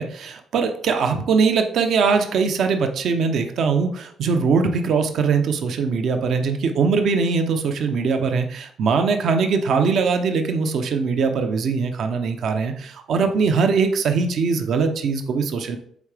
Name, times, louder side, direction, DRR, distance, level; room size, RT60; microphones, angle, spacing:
voice 1, 0.0-15.8, right 5 dB, 70° right, 6 dB, 0.7 m, -21 dB
8.3 x 3.7 x 3.4 m, 0.64 s
cardioid pair, 90°, 0 cm